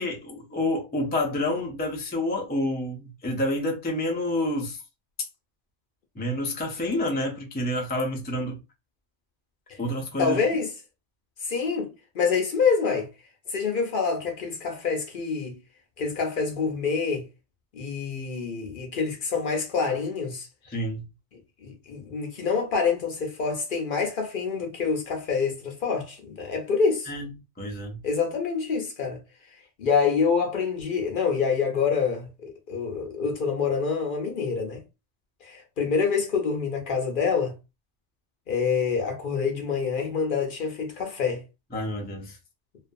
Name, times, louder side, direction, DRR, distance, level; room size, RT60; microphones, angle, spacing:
voice 1, 0.0-4.8 5.2-5.3 6.2-8.6 9.8-10.4 20.6-21.0 27.1-27.3 27.6-28.0 41.7-42.4, left 1 dB, 15° left, 0.3 m, -28 dB
voice 2, 10.2-10.7 11.4-13.1 13.5-15.6 16.0-17.3 17.7-20.5 21.6-27.1 28.0-29.2 29.8-34.8 35.4-37.5 38.5-41.4, left 5 dB, 55° left, 0.7 m, -26 dB
2.5 x 2.2 x 2.5 m
omnidirectional pair, 1.2 m